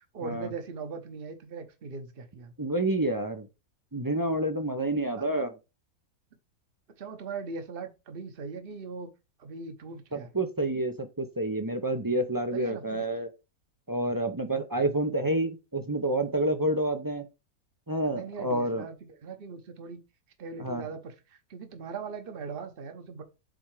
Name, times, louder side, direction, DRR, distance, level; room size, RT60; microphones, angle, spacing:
voice 1, 0.1-2.5 5.2-5.3 7.0-9.1 9.4-10.3 12.5-13.1 18.1-20.0 20.4-23.2, right 5 dB, 45° right, 1.1 m, -40 dB
voice 2, 2.6-3.5 3.9-5.5 10.1-13.3 13.9-17.3 17.9-18.8 20.6-20.8, right 1 dB, 25° right, 0.5 m, -28 dB
7.8 x 3.4 x 4.8 m
omnidirectional pair, 1.5 m